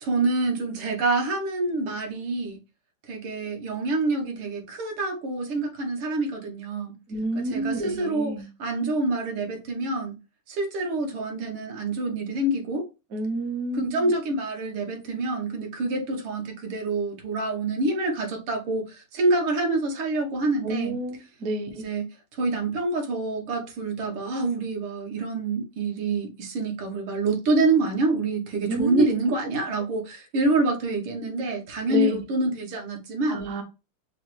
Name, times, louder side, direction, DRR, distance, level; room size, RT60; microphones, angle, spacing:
voice 1, 0.0-2.6 3.1-7.0 7.4-8.3 8.6-10.2 10.5-12.9 13.7-21.0 21.8-22.1 22.3-33.5, right 2 dB, 85° right, 1.9 m, -26 dB
voice 2, 7.1-8.5 13.1-14.1 20.6-21.8 28.7-29.1 31.9-32.2 33.3-33.6, right 3 dB, 65° right, 0.8 m, -29 dB
6.1 x 2.0 x 3.0 m
omnidirectional pair, 2.3 m